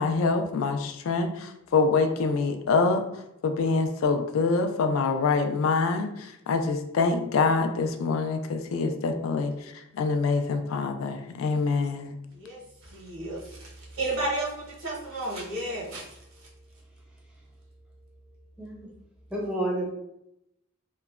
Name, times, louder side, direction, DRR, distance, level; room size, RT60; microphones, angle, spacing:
voice 1, 0.0-3.0 3.4-9.5 9.9-12.1, left 4 dB, 80° left, 7 dB, 0.3 m, -25 dB
voice 2, 12.3-16.5, right 2 dB, 85° right, -3 dB, 0.9 m, -33 dB
voice 3, 18.6-18.9 19.3-19.9, right 1 dB, 5° right, -3 dB, 0.5 m, -30 dB
3.0 x 2.1 x 2.3 m, 0.82 s
head